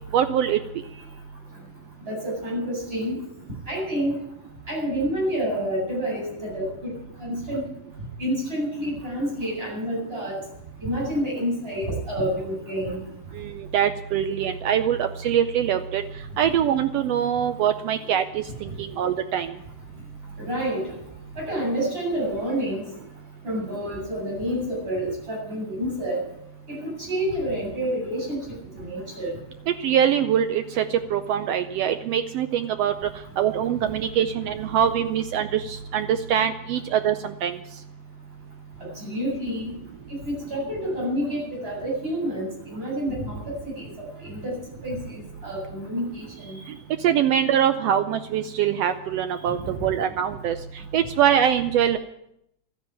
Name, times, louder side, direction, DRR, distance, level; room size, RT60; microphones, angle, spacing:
voice 1, 0.1-0.6 13.3-16.0 16.4-19.5 29.7-33.1 33.4-37.6 47.0-50.6 50.9-52.0, right 9 dB, 85° right, 9 dB, 1.4 m, -23 dB
voice 2, 2.1-3.2 3.7-4.2 4.7-6.9 7.2-7.6 8.2-10.4 10.8-13.0 20.4-20.9 21.4-22.9 23.4-26.2 26.7-29.3 38.8-39.8 40.2-43.9 44.2-44.6 44.8-46.6 49.5-49.9, equal, 15° right, -4 dB, 8.3 m, -28 dB
13.0 x 10.0 x 8.9 m, 0.79 s
omnidirectional pair, 3.6 m